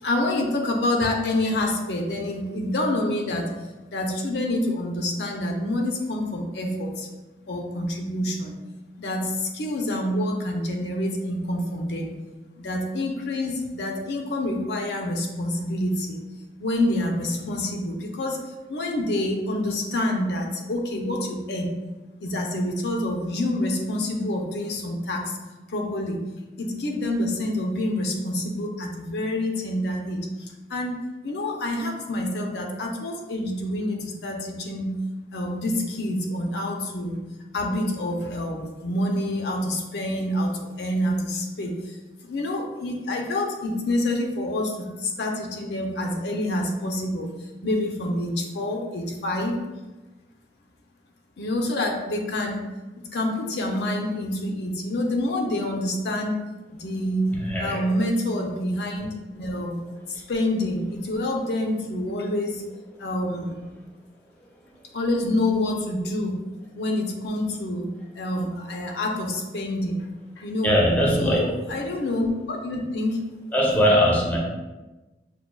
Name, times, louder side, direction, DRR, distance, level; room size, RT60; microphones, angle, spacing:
voice 1, 0.0-3.5 3.9-7.1 7.5-8.6 9.0-12.1 12.6-16.2 16.6-18.4 18.7-21.7 22.2-25.4 25.7-26.2 26.6-35.0 35.3-37.2 37.5-42.0 42.2-49.6 51.4-52.6 53.0-56.4 56.7-57.3 57.6-59.8 60.1-62.6 63.0-63.6 64.9-66.5 66.8-67.9 68.2-70.0 70.4-70.8 71.2-73.2, left 1 dB, 65° left, 1 dB, 0.5 m, -27 dB
voice 2, 57.3-57.9 60.1-60.3 64.4-64.7 70.6-71.8 73.5-74.4, equal, 10° left, -3 dB, 0.5 m, -22 dB
5.8 x 2.2 x 2.2 m, 1.1 s
head